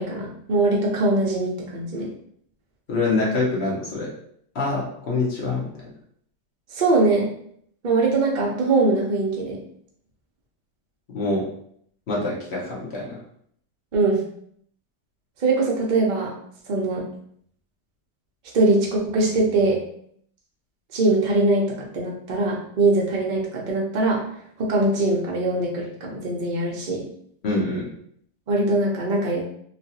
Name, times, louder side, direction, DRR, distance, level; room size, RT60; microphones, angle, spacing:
voice 1, 0.0-2.1 6.7-7.3 7.8-9.6 13.9-14.2 15.4-16.3 16.7-17.0 18.5-19.8 20.9-24.2 24.6-27.0 28.5-29.4, right 2 dB, 55° right, -3 dB, 0.5 m, -22 dB
voice 2, 2.9-4.1 4.5-5.7 11.1-11.4 12.1-13.2 27.4-27.9, left 3 dB, 50° left, -5 dB, 0.9 m, -25 dB
3.1 x 2.7 x 2.8 m, 0.66 s
omnidirectional pair, 1.8 m